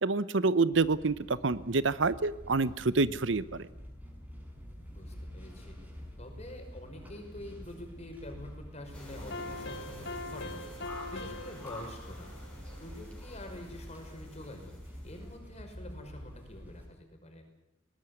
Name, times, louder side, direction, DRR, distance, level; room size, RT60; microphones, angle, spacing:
voice 1, 0.0-3.7, right 3 dB, 75° right, 16 dB, 0.9 m, -27 dB
sound 1, 0.7-16.9, equal, 10° right, 6.0 m, -48 dB
voice 2, 4.9-5.8 6.2-10.7 11.1-12.3 12.8-14.7 15.0-17.4, left 1 dB, 35° left, 4 dB, 5.5 m, -46 dB
sound 2, 8.9-15.3, left 1 dB, 5° left, 7.1 m, -49 dB
sound 3, 9.1-13.3, left 2 dB, 65° left, 1.9 m, -43 dB
20.0 x 19.0 x 9.7 m, 0.86 s
head